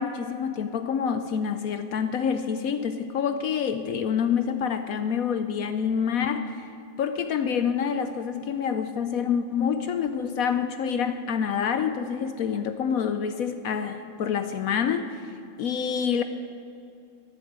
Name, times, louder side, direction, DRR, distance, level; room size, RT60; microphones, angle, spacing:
voice 1, 0.0-6.7 7.0-15.3 15.6-16.2, left 7 dB, 70° left, 9 dB, 0.8 m, -27 dB
15.0 x 7.0 x 8.6 m, 2.7 s
omnidirectional pair, 2.0 m